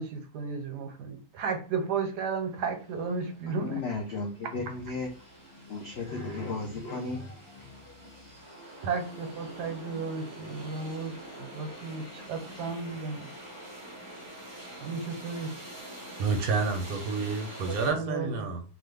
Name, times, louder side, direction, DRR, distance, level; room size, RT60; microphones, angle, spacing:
voice 1, 0.0-3.8 8.8-13.3 14.8-15.6 17.9-18.3, right 5 dB, 90° right, 1.3 m, -34 dB
sound 1, 1.9-2.0 2.3-17.9, equal, 20° right, 1.0 m, -46 dB
voice 2, 3.5-5.1 5.7-8.1 9.5-9.6 9.9-10.0, left 3 dB, 75° left, 0.5 m, -36 dB
voice 3, 16.2-18.6, right 4 dB, 65° right, 1.2 m, -29 dB
2.9 x 2.4 x 3.3 m
omnidirectional pair, 1.7 m